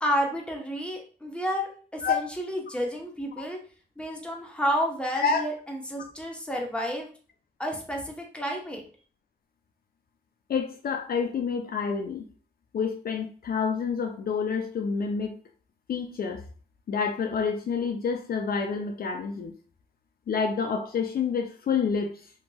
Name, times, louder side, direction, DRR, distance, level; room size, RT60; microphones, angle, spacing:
voice 1, 0.0-3.6 4.0-7.1 7.6-8.8, equal, 5° left, 0 dB, 0.9 m, -30 dB
voice 2, 10.5-12.3 12.7-15.4 15.9-16.4 16.9-19.5 20.3-22.3, left 5 dB, 55° left, 4 dB, 0.4 m, -28 dB
2.8 x 2.6 x 2.3 m, 0.41 s
cardioid pair, 65°, 18 cm